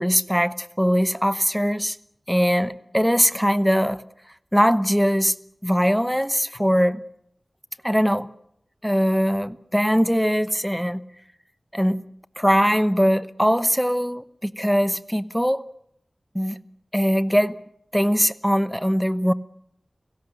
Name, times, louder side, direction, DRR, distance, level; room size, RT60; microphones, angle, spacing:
voice 1, 0.0-2.0 2.3-4.0 4.5-5.3 5.6-7.0 7.8-8.3 8.8-11.0 11.7-12.0 12.4-15.6 16.3-16.6 16.9-17.6 17.9-19.3, equal, ahead, 0.9 m, -21 dB
29.5 x 17.0 x 6.8 m
wide cardioid pair, 60°, 0 cm